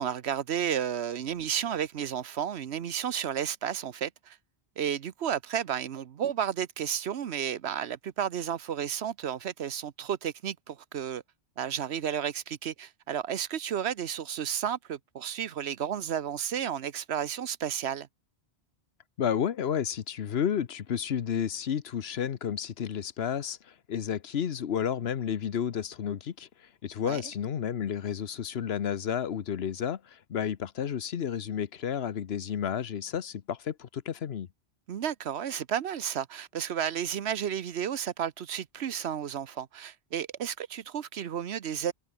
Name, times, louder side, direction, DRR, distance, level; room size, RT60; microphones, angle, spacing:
voice 1, 0.0-4.4 4.8-11.2 11.6-18.1 27.0-27.2 34.9-41.9, right 9 dB, 75° right, 1.1 m, -32 dB
voice 2, 19.2-34.5, left 8 dB, 70° left, 1.1 m, -31 dB
omnidirectional pair, 1.1 m